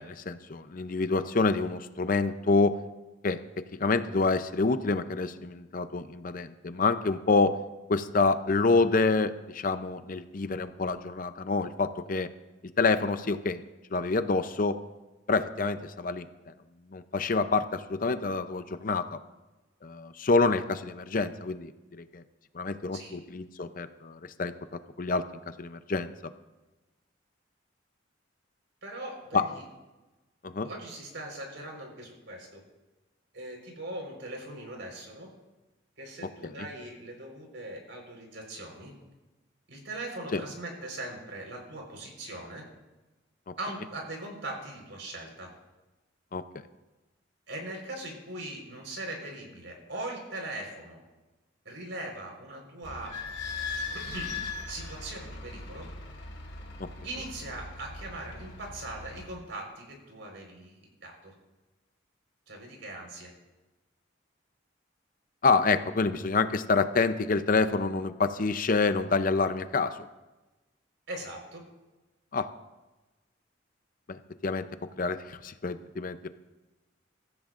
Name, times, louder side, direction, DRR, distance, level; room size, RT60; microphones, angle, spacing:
voice 1, 0.0-2.8 3.2-7.6 7.9-12.3 12.8-13.6 13.9-14.8 15.3-16.3 16.9-19.2 19.8-22.2 22.5-24.5 25.0-25.2 25.6-26.1 29.3-29.4 30.5-30.7 40.3-40.4 46.3-46.4 56.8-56.9 65.4-70.1 72.3-72.5 74.1-74.6 75.0-76.3, left 3 dB, 45° left, 10 dB, 0.6 m, -27 dB
voice 2, 28.8-29.6 30.6-32.6 33.3-35.3 36.0-38.9 39.7-42.6 43.6-45.5 47.5-51.0 51.6-53.1 53.7-55.9 57.0-61.3 62.5-63.3 71.1-71.7, right 1 dB, 75° right, 0 dB, 4.5 m, -40 dB
Idling / Squeak, 52.8-59.2, left 4 dB, 70° left, 3.8 m, -39 dB
24.0 x 14.0 x 2.5 m, 1.1 s
head